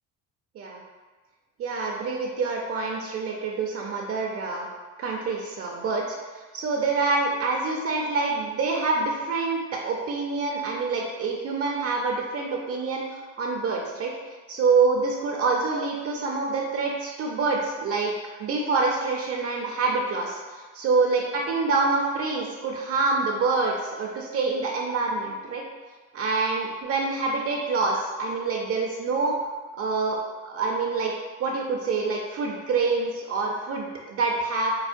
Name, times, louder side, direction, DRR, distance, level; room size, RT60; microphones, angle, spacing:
voice 1, 1.6-4.7 5.0-14.1 14.5-18.1 18.4-25.6 26.1-29.3 29.8-31.1 31.4-34.7, right 4 dB, 50° right, 0 dB, 0.5 m, -26 dB
4.7 x 2.1 x 2.5 m, 1.4 s
cardioid pair, 120°, 31 cm